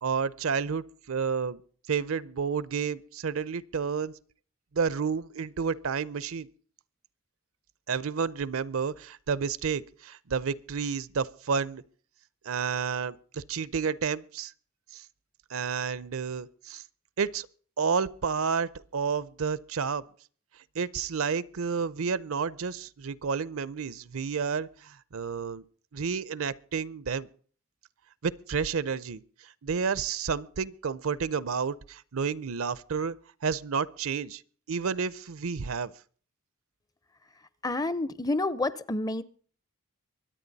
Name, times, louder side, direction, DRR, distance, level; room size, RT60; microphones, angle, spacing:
voice 1, 0.0-1.6 1.9-4.1 4.7-6.5 7.9-11.8 12.4-14.5 14.9-15.0 15.5-16.8 17.2-17.5 17.8-20.0 20.7-25.6 25.9-27.3 28.2-33.2 33.4-34.4 34.7-35.9, right 6 dB, 70° right, 0.6 m, -30 dB
voice 2, 37.6-39.2, left 2 dB, 15° left, 0.5 m, -29 dB
24.0 x 8.8 x 4.1 m
head